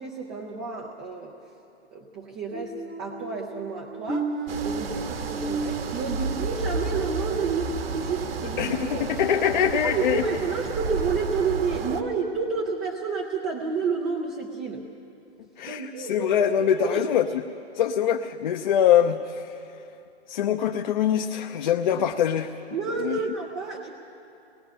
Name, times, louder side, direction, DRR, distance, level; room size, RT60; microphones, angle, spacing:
voice 1, 0.0-1.4 1.9-9.1 9.4-14.8 15.7-16.3 16.7-17.1 22.7-23.9, right 5 dB, 10° right, 0 dB, 0.4 m, -30 dB
sound 1, 2.5-8.2 8.6-8.9 9.4-9.6, right 3 dB, 85° right, 4.8 m, -35 dB
sound 2, 4.5-12.0, right 4 dB, 60° right, 1.5 m, -32 dB
voice 2, 8.6-10.2 15.6-17.4 17.7-19.6 20.3-22.5 23.0-23.2, left 9 dB, 45° left, 4 dB, 0.8 m, -23 dB
25.0 x 20.0 x 5.6 m, 2.7 s
hypercardioid pair, 155°, 34 cm